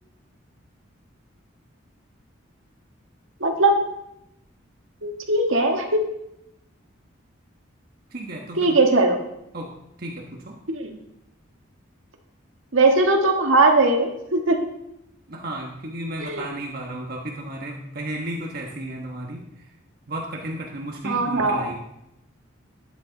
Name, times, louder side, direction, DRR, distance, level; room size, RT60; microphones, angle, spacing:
voice 1, 3.4-3.8 5.0-6.0 8.5-9.2 10.7-11.0 12.7-14.6 16.2-16.4 21.0-21.7, right 2 dB, 85° right, 3 dB, 1.7 m, -20 dB
voice 2, 8.1-8.8 9.5-9.7 10.0-10.5 15.3-19.4 20.1-21.8, right 1 dB, 50° right, 0 dB, 1.2 m, -33 dB
12.5 x 9.5 x 4.0 m, 0.83 s
head